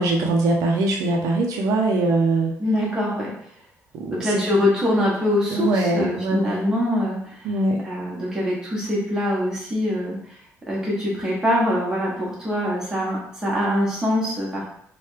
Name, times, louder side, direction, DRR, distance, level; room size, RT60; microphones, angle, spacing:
voice 1, 0.0-2.5 3.9-4.5 5.5-6.6 7.4-7.9, right 2 dB, 75° right, 1 dB, 0.5 m, -22 dB
voice 2, 2.6-3.3 4.1-7.5 7.8-10.2 10.7-14.6, left 1 dB, 10° right, -6 dB, 1.0 m, -23 dB
3.1 x 2.2 x 3.1 m, 0.66 s
cardioid pair, 175°, 6 cm